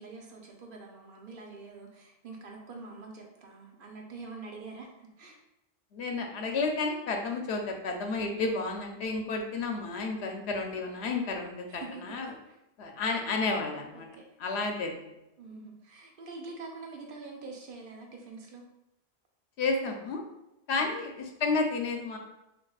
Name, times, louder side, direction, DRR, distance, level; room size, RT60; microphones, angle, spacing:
voice 1, 0.0-4.9 5.2-5.4 11.7-12.0 12.5-12.6 13.9-14.2 15.4-18.6 20.8-20.9, right 3 dB, 55° right, 0 dB, 0.8 m, -45 dB
voice 2, 5.9-12.3 12.8-14.1 14.4-15.2 19.6-20.2 20.7-22.2, left 3 dB, 75° left, 3 dB, 0.8 m, -31 dB
5.2 x 2.3 x 2.3 m, 0.90 s
omnidirectional pair, 1.1 m